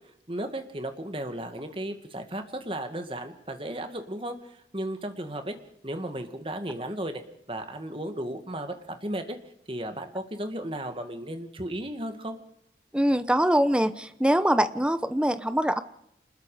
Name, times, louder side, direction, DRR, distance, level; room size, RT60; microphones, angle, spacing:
voice 1, 0.3-5.5 5.8-7.2 7.5-9.4 9.7-12.4, right 1 dB, 30° right, 7 dB, 2.2 m, -35 dB
voice 2, 12.9-15.8, equal, 5° right, 12 dB, 0.9 m, -23 dB
27.0 x 21.0 x 5.1 m, 0.77 s
head